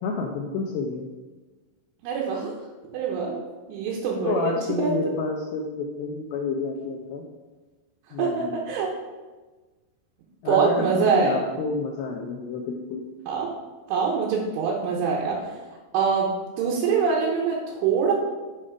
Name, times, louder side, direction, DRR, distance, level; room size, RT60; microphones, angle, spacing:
voice 1, 0.0-1.0 4.2-7.2 8.1-8.6 10.4-13.0, left 4 dB, 80° left, 0 dB, 2.4 m, -29 dB
voice 2, 2.0-2.5 2.9-3.4 3.7-4.9 8.2-8.9 10.5-11.4 13.3-13.5 13.9-15.6 15.9-18.1, right 5 dB, 90° right, -4 dB, 3.5 m, -24 dB
7.5 x 5.6 x 5.0 m, 1.3 s
omnidirectional pair, 5.5 m